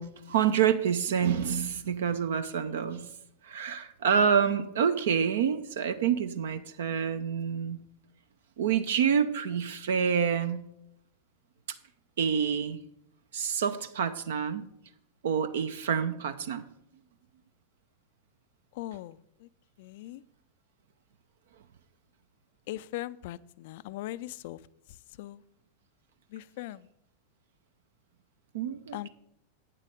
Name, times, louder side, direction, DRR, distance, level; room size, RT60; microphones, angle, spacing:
voice 1, 0.0-3.1 3.4-7.8 8.6-10.6 12.2-12.8 13.3-14.6 15.2-16.6 28.5-29.1, right 7 dB, 60° right, 11 dB, 0.5 m, -27 dB
voice 2, 18.7-19.5 19.8-20.2 22.7-24.6 25.2-25.4 26.3-26.9 28.9-29.1, left 15 dB, 50° left, 17 dB, 0.3 m, -39 dB
9.0 x 7.6 x 5.1 m, 0.78 s
figure-of-eight pair, 90°, 0 cm